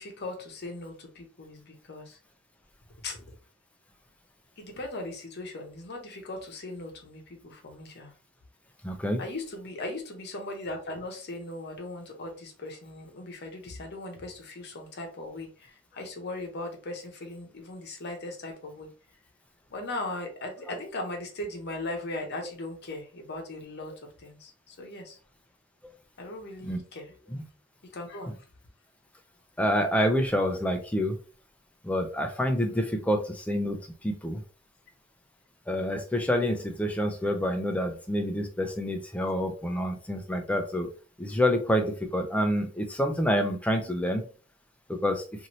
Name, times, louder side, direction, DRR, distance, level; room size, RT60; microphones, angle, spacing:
voice 1, 0.0-2.2 3.0-3.4 4.6-8.1 9.2-18.9 19.7-25.2 26.2-27.1 27.9-28.4, left 2 dB, 50° left, 3 dB, 0.8 m, -38 dB
voice 2, 8.8-9.2 26.7-26.8 27.3-27.4 29.6-31.2 31.8-33.8 34.0-34.4 35.7-40.9 41.2-44.2 44.9-45.2, equal, 5° left, 4 dB, 0.4 m, -27 dB
2.7 x 2.6 x 3.0 m, 0.38 s
head